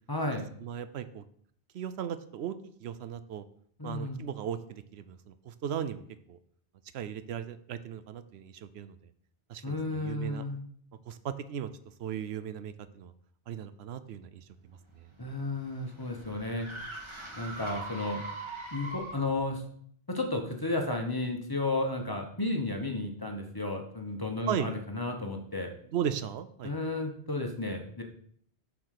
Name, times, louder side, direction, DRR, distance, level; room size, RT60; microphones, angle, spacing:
voice 1, 0.1-0.5 3.8-4.2 9.6-10.6 15.2-16.7 17.4-18.2 18.7-19.6 20.1-25.7 26.6-28.0, left 2 dB, 20° left, 2 dB, 1.1 m, -33 dB
voice 2, 0.6-1.2 1.7-2.6 2.8-3.4 3.8-6.4 6.9-9.0 9.5-10.4 11.1-11.7 12.0-13.1 13.5-14.5 15.0-15.1 24.5-24.7 25.9-26.8, right 9 dB, 75° right, 13 dB, 0.8 m, -37 dB
sound 1, 14.9-19.4, right 2 dB, 25° right, 1.7 m, -42 dB
7.4 x 4.8 x 6.6 m, 0.62 s
omnidirectional pair, 1.1 m